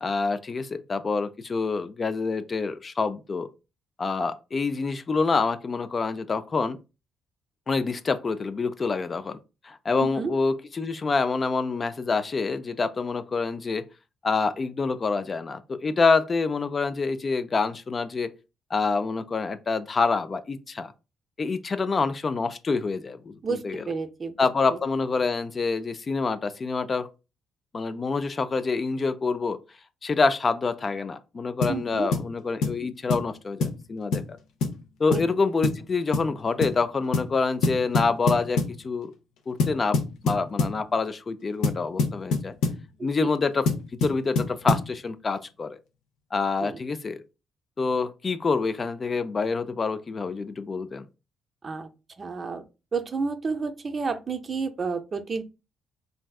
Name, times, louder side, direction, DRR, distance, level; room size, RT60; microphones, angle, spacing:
voice 1, 0.0-3.5 4.0-6.8 7.7-9.4 9.6-13.9 14.2-18.3 18.7-20.9 21.4-23.8 24.4-27.1 27.7-29.6 30.0-34.4 35.0-39.1 39.5-42.5 43.0-45.8 46.3-47.2 47.8-51.1, left 4 dB, 35° left, 0.3 m, -27 dB
voice 2, 10.0-10.3 23.4-24.3 24.7-24.8 31.7-32.1 35.1-35.2 35.5-35.6 43.0-43.3 46.6-46.8 51.6-51.9 52.2-52.6 52.9-55.4, right 4 dB, 40° right, 0.4 m, -31 dB
sound 1, 31.6-31.8 32.1-32.3 32.6-32.8 33.1-33.3 33.6-33.8 34.1-34.3 34.6-34.8 35.1-35.3 35.6-35.8 36.1-36.3 36.6-36.8 37.1-37.3 37.6-38.8 39.6-40.8 41.6-42.8 43.7-44.9, left 3 dB, 85° left, 0.6 m, -25 dB
3.2 x 2.6 x 2.3 m
cardioid pair, 90°, 0 cm